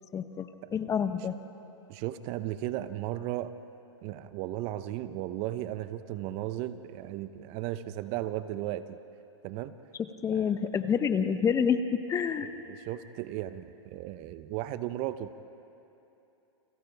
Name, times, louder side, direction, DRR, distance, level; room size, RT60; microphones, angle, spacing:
voice 1, 0.1-1.3 10.0-12.5, left 7 dB, 20° left, 10 dB, 0.9 m, -28 dB
voice 2, 1.9-3.5 4.0-9.0 9.4-9.7 10.3-10.6 12.4-15.3, right 14 dB, 40° right, 12 dB, 0.8 m, -35 dB
30.0 x 27.5 x 3.5 m, 3.0 s
hypercardioid pair, 120°, 15 cm